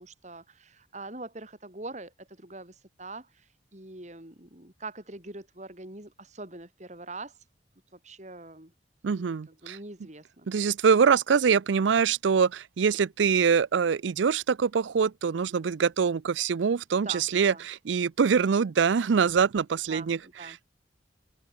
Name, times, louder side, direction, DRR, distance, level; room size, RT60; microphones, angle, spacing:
voice 1, 0.0-7.4 7.9-8.7 9.1-10.5 16.9-17.7 19.9-20.6, right 2 dB, 40° right, 3.2 m, -43 dB
voice 2, 9.0-9.8 10.5-20.2, right 6 dB, 85° right, 0.5 m, -24 dB
open air
head